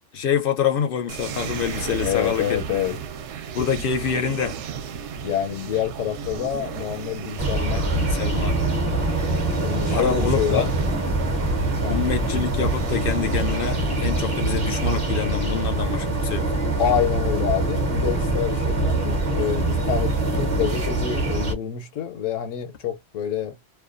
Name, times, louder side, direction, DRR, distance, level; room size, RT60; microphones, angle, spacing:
voice 1, 0.1-2.6 3.5-4.6 7.5-8.6 9.9-10.7 11.9-16.6, left 7 dB, 60° left, 0.6 m, -26 dB
sound 1, 1.1-15.1, right 7 dB, 70° right, 0.8 m, -35 dB
voice 2, 2.0-3.0 5.2-7.9 9.5-10.7 11.8-12.0 16.8-23.6, left 9 dB, 80° left, 1.0 m, -27 dB
sound 2, 7.4-21.5, right 2 dB, 40° right, 0.7 m, -24 dB
2.4 x 2.2 x 2.4 m
omnidirectional pair, 1.3 m